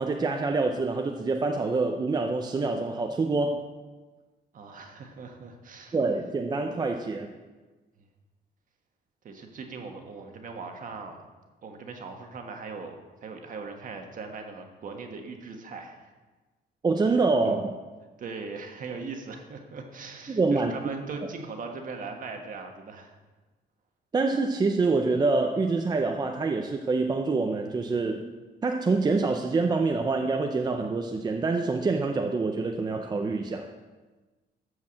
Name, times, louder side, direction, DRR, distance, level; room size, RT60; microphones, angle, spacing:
voice 1, 0.0-3.6 5.9-7.3 16.8-17.7 20.3-20.7 24.1-28.2 28.6-33.7, right 3 dB, 20° right, 3 dB, 0.6 m, -26 dB
voice 2, 4.5-6.0 9.2-11.2 11.6-13.0 13.2-16.1 18.2-23.2, right 4 dB, 50° right, 4 dB, 1.4 m, -39 dB
13.0 x 4.7 x 7.6 m, 1.3 s
cardioid pair, 165°, 18 cm